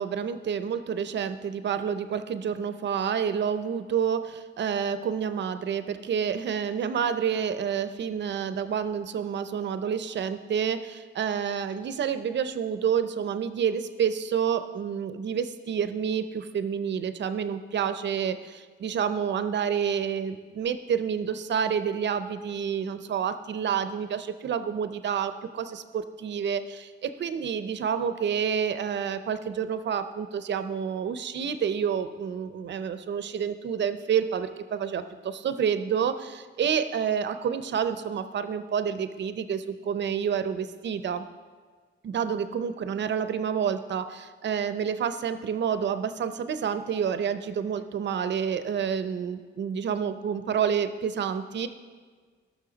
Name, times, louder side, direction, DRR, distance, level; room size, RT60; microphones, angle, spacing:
voice 1, 0.0-41.3 42.0-51.7, right 7 dB, 65° right, 11 dB, 0.6 m, -29 dB
18.0 x 6.4 x 4.0 m, 1.5 s
wide cardioid pair, 175°, 20 cm